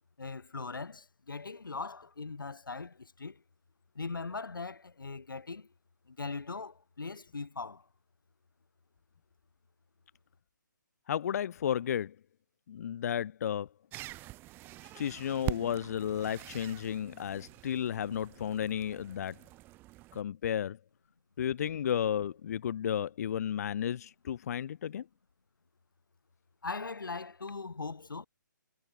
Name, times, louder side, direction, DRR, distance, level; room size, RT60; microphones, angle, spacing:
voice 1, 0.2-3.4 4.0-5.7 6.1-7.9 26.6-28.3, left 4 dB, 85° left, 1.8 m, -40 dB
voice 2, 11.1-12.2 12.7-13.7 14.9-19.4 20.1-20.8 21.4-25.1, left 9 dB, 50° left, 0.9 m, -33 dB
sound 1, 13.9-20.2, right 18 dB, 20° right, 1.5 m, -44 dB
hypercardioid pair, 145°, 11 cm